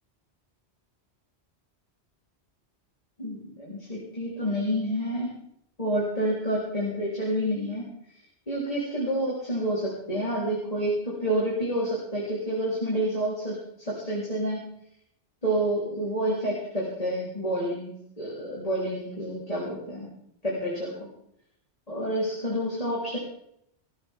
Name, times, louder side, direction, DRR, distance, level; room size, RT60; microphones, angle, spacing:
voice 1, 3.2-5.3 5.8-7.9 8.5-14.7 15.4-20.1 20.4-21.1 21.9-23.2, right 1 dB, 35° left, -5 dB, 4.0 m, -29 dB
21.0 x 15.0 x 3.7 m, 0.73 s
omnidirectional pair, 1.1 m